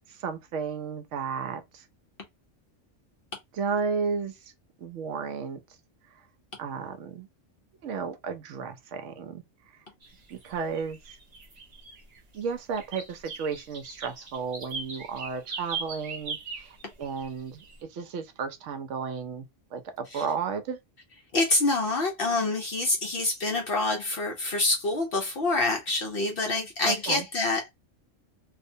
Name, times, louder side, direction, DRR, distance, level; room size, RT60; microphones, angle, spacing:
voice 1, 0.1-1.9 3.5-4.5 4.8-5.6 6.6-7.3 7.8-9.4 9.7-9.8 10.3-11.2 12.3-20.8 26.8-27.3, right 5 dB, 70° right, 0.9 m, -33 dB
sound 1, 10.0-10.1 10.4-12.4 12.7-17.3 17.6-17.8, right 4 dB, 40° right, 0.6 m, -39 dB
voice 2, 21.3-27.6, left 2 dB, 60° left, 0.6 m, -26 dB
2.4 x 2.1 x 2.6 m
omnidirectional pair, 1.3 m